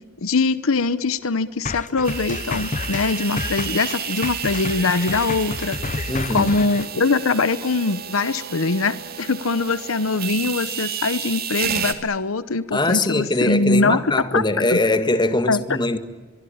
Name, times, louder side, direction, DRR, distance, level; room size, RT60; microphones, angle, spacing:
voice 1, 0.2-5.8 6.3-14.8 15.5-15.6, left 3 dB, 70° left, 0.9 m, -22 dB
sound 1, 1.7-6.9, left 3 dB, 35° left, 0.8 m, -30 dB
sound 2, 2.0-11.9, right 8 dB, 45° right, 2.6 m, -31 dB
voice 2, 6.1-6.7 12.7-16.0, left 2 dB, 20° left, 1.7 m, -22 dB
24.0 x 23.5 x 8.7 m
head